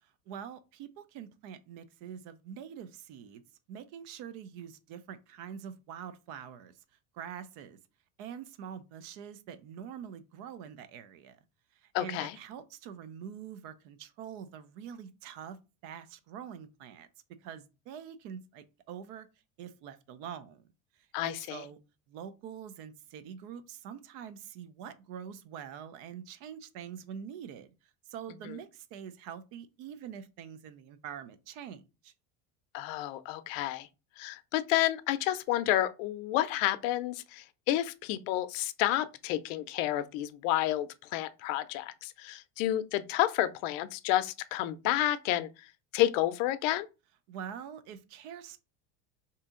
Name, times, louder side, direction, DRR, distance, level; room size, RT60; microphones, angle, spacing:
voice 1, 0.0-3.4 3.7-6.8 7.1-7.8 8.2-11.4 11.7-15.6 15.8-17.1 17.4-19.3 19.6-20.7 21.0-21.8 22.1-32.1 47.3-48.6, right 8 dB, 60° right, 0.5 m, -45 dB
voice 2, 11.9-12.4 21.1-21.6 32.7-33.9 34.2-45.5 45.9-46.9, left 14 dB, 80° left, 0.5 m, -30 dB
2.8 x 2.5 x 3.6 m
cardioid pair, 155°, 38 cm